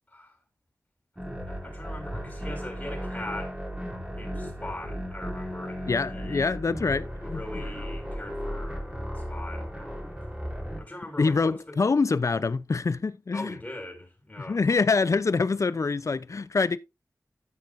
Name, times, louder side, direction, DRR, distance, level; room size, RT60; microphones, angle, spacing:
sound 1, 1.2-10.8, equal, 15° right, 3.7 m, -35 dB
voice 1, 1.5-3.6 4.1-6.6 7.2-8.9 9.1-10.2 10.8-11.6 13.3-14.8, left 1 dB, 20° left, 5.5 m, -41 dB
voice 2, 5.9-7.4 11.2-13.6 14.5-16.8, left 4 dB, 55° left, 0.6 m, -25 dB
13.5 x 6.6 x 2.6 m
wide cardioid pair, 85°, 6 cm